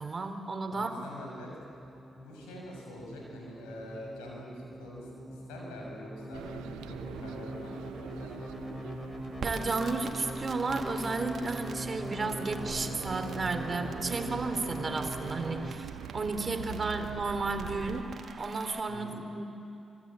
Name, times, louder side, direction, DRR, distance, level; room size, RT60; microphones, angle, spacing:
voice 1, 0.0-0.9 9.4-18.1 18.4-19.4, right 3 dB, 45° right, 7 dB, 3.0 m, -33 dB
voice 2, 0.7-1.5 2.1-8.8 16.9-17.0 18.9-19.2, left 1 dB, 85° left, -2 dB, 6.5 m, -45 dB
sound 1, 1.1-15.7, equal, 20° left, 3.7 m, -41 dB
sound 2, 6.3-18.0, right 12 dB, 80° right, 0.8 m, -44 dB
Crackle, 9.3-18.8, right 5 dB, 60° right, 2.1 m, -47 dB
25.5 x 23.0 x 8.8 m, 2.7 s
hypercardioid pair, 40°, 0 cm